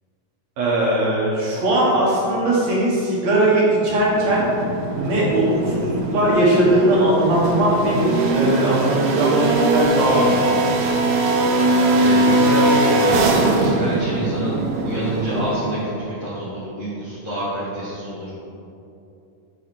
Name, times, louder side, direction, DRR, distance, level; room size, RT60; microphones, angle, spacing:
voice 1, 0.6-4.4 4.9-10.6, right 1 dB, 60° right, -6 dB, 2.3 m, -19 dB
sound 1, 4.0-15.9, right 2 dB, 80° right, 2.4 m, -20 dB
voice 2, 11.9-13.3 13.6-18.3, right 1 dB, 40° left, -9 dB, 1.1 m, -27 dB
6.4 x 4.9 x 5.9 m, 2.7 s
omnidirectional pair, 3.9 m